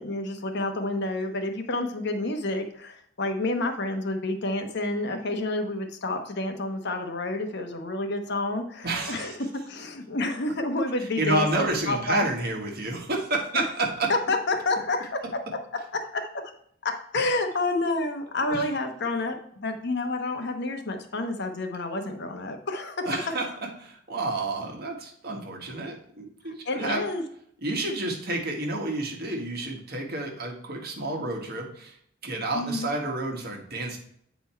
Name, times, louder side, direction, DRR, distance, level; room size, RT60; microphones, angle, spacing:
voice 1, 0.0-12.3 13.5-13.6 14.1-15.1 15.9-16.3 16.8-23.4 26.6-27.2 32.5-32.9, left 2 dB, 60° left, 5 dB, 1.0 m, -29 dB
voice 2, 8.8-9.4 11.0-14.1 18.5-18.6 23.0-23.5 23.8-27.1 27.6-32.0 32.2-34.0, right 2 dB, 55° right, 1 dB, 1.6 m, -30 dB
8.3 x 4.3 x 4.4 m, 0.67 s
head